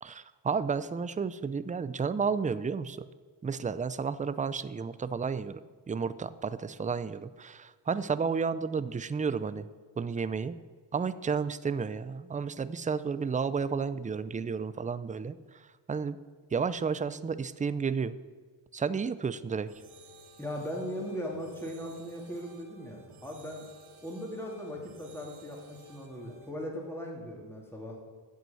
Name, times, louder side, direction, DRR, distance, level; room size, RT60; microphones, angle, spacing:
voice 1, 0.0-3.0 3.4-5.6 5.9-9.7 10.0-10.6 10.9-16.2 16.5-18.2 18.7-19.7, right 5 dB, 20° right, 15 dB, 0.3 m, -32 dB
sound 1, 19.7-26.5, right 2 dB, 80° right, 1.9 m, -55 dB
voice 2, 20.4-23.7 24.0-28.0, equal, 5° left, -1 dB, 2.4 m, -39 dB
9.2 x 8.1 x 7.7 m, 1.5 s
cardioid pair, 105°, 48 cm